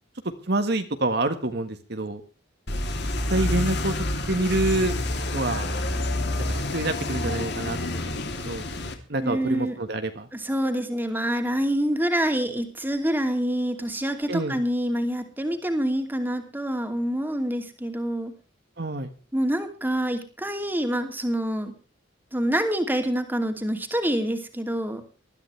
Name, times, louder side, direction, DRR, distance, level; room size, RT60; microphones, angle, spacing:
voice 1, 0.5-2.2 3.3-3.9 4.3-4.9 5.3-5.7 6.7-10.3 14.3-14.6 18.8-19.1, right 2 dB, 55° right, 7 dB, 1.6 m, -27 dB
sound 1, 2.7-8.9, left 1 dB, 60° left, 3.0 m, -28 dB
voice 2, 9.2-9.8 10.3-18.3 19.3-21.7 22.3-25.0, equal, 10° right, 6 dB, 2.7 m, -26 dB
20.5 x 13.5 x 3.3 m, 0.35 s
head